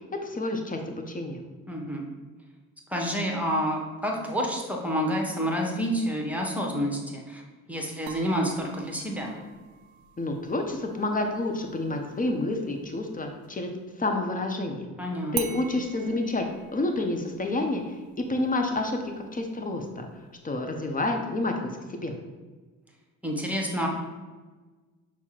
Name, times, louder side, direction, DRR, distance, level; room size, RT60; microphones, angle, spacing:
voice 1, 0.2-1.4 10.2-13.7 14.0-14.9 15.3-16.4 16.7-17.8 18.3-19.0 19.3-20.1 20.4-22.1, left 2 dB, 20° left, 3 dB, 0.7 m, -29 dB
voice 2, 1.7-2.0 2.9-7.4 7.7-9.4 15.0-15.6 23.2-23.9, equal, 5° right, 0 dB, 0.9 m, -29 dB
sound 1, 8.1-13.7 15.3-20.3, right 10 dB, 45° right, 0.4 m, -44 dB
5.7 x 2.0 x 4.4 m, 1.3 s
hypercardioid pair, 50°, 44 cm